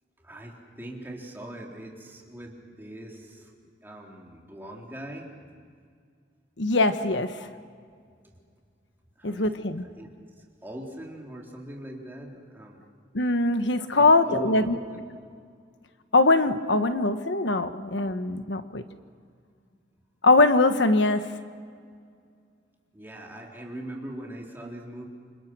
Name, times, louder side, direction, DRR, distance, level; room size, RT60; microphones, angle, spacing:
voice 1, 0.2-5.3 7.3-7.4 8.2-8.3 9.2-9.7 9.9-10.1 10.6-12.8 13.8-15.0 22.9-25.1, right 1 dB, 10° right, -1 dB, 3.7 m, -41 dB
voice 2, 6.6-7.4 9.2-9.8 13.1-14.8 16.1-18.8 20.2-21.3, left 2 dB, 85° left, 9 dB, 1.2 m, -22 dB
29.0 x 27.5 x 6.2 m, 2.1 s
head